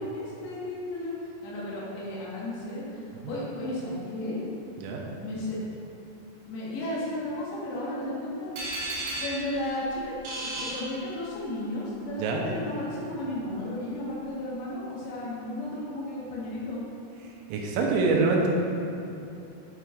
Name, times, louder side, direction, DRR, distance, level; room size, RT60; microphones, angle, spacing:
voice 1, 0.0-4.4 5.2-5.6 6.4-8.5 9.2-10.1 10.4-16.8, left 1 dB, 75° left, -6 dB, 2.9 m, -34 dB
sound 1, 8.6-11.6, right 1 dB, 70° right, 3.2 m, -35 dB
voice 2, 17.5-18.5, right 4 dB, 90° right, -1 dB, 3.2 m, -25 dB
9.4 x 4.5 x 2.4 m, 2.9 s
omnidirectional pair, 5.5 m